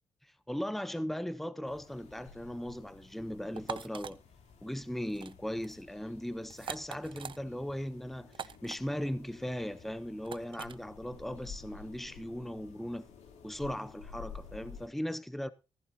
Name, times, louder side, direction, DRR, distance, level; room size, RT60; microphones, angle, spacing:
voice 1, 0.2-4.2 4.6-13.1 13.4-15.5, equal, ahead, 0.8 m, -38 dB
sound 1, 1.6-14.9, left 6 dB, 90° left, 3.4 m, -52 dB
sound 2, 3.6-4.1 5.1-5.3 5.6-5.8 6.5-7.4 8.3-8.8 10.2-10.8, right 7 dB, 50° right, 0.7 m, -42 dB
15.0 x 14.5 x 2.9 m
cardioid pair, 105°, 11 cm